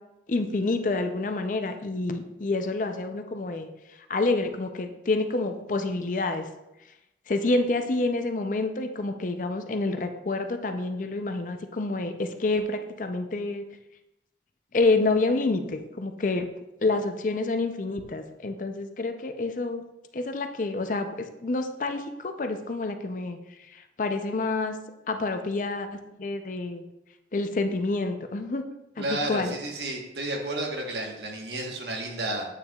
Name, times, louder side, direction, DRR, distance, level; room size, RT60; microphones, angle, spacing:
voice 1, 0.3-3.7 4.1-6.5 7.3-13.6 14.7-16.5 16.8-19.8 20.1-23.4 23.7-24.8 25.1-25.9 26.2-26.8 27.3-28.7 29.0-29.5, left 3 dB, 45° left, 7 dB, 0.5 m, -28 dB
voice 2, 29.0-32.5, right 1 dB, 75° right, 1 dB, 1.3 m, -32 dB
8.3 x 6.7 x 2.3 m, 0.93 s
head